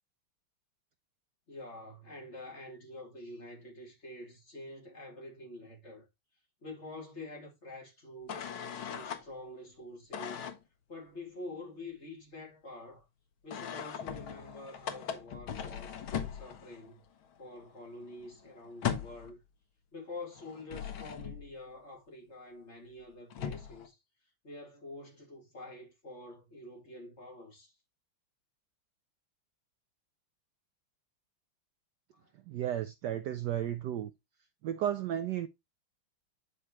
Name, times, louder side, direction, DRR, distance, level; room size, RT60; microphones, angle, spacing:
voice 1, 1.5-6.1 6.6-8.5 8.8-10.5 10.9-13.1 13.4-17.0 17.4-19.4 19.9-24.0 24.4-27.7 32.1-32.3, left 2 dB, 30° left, 2.7 m, -47 dB
sound 1, 8.3-9.2 10.1-10.6 13.5-16.9 17.2-17.4 17.6-19.3 20.3-21.5 23.0-23.1 23.3-23.9, left 8 dB, 75° left, 1.9 m, -39 dB
voice 2, 32.5-34.1 34.6-35.5, right 11 dB, 75° right, 1.0 m, -33 dB
9.8 x 4.8 x 3.0 m
omnidirectional pair, 2.3 m